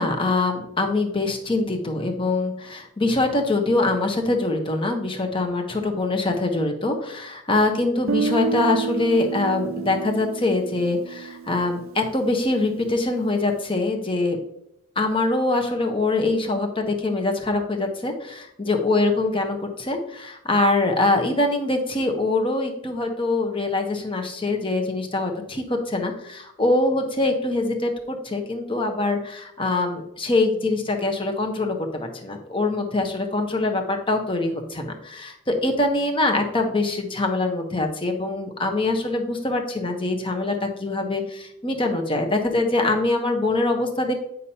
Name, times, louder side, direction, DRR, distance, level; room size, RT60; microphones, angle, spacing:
voice 1, 0.0-14.4 15.0-44.1, left 2 dB, 25° left, 3 dB, 1.0 m, -24 dB
Guitar, 8.1-12.0, right 5 dB, 75° right, 0.5 m, -29 dB
9.3 x 5.5 x 2.9 m, 0.79 s
head